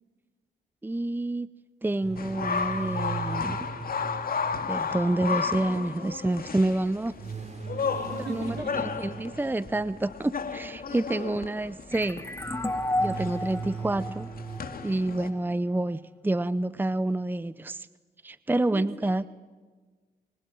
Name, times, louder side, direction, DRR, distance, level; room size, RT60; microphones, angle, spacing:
voice 1, 0.8-1.5 1.8-3.7 4.7-7.1 8.3-8.6 9.0-12.3 13.0-14.3 14.8-17.9 18.2-19.2, right 2 dB, 10° right, 16 dB, 0.7 m, -28 dB
sound 1, 2.0-5.5 7.2-10.3 12.4-14.6, right 5 dB, 40° right, 3.1 m, -39 dB
sound 2, 2.2-15.3, left 5 dB, 55° left, 2.5 m, -34 dB
voice 2, 8.1-8.9 11.1-11.3 18.5-19.3, right 4 dB, 70° right, 3 dB, 4.8 m, -41 dB
sound 3, 11.9-15.3, left 1 dB, 15° left, 2.2 m, -32 dB
26.0 x 22.0 x 9.2 m, 1.4 s
cardioid pair, 65°, 18 cm